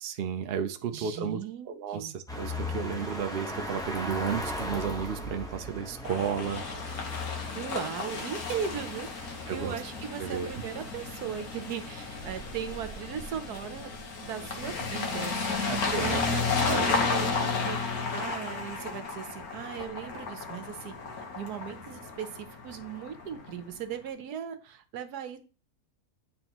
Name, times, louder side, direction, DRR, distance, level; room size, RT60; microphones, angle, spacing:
voice 1, 0.0-1.4 1.7-6.6 9.5-9.8 10.2-10.6 15.6-16.2 16.7-16.9, right 7 dB, 55° right, 7 dB, 0.7 m, -33 dB
voice 2, 0.9-2.1 7.5-9.1 9.5-13.9 14.2-15.6 15.9-21.0 21.3-25.4, right 8 dB, 75° right, 9 dB, 1.3 m, -38 dB
sound 1, 2.3-13.7, left 1 dB, 5° left, 0.9 m, -39 dB
sound 2, 6.0-23.7, left 4 dB, 65° left, 1.7 m, -33 dB
9.0 x 4.3 x 3.0 m, 0.35 s
omnidirectional pair, 1.7 m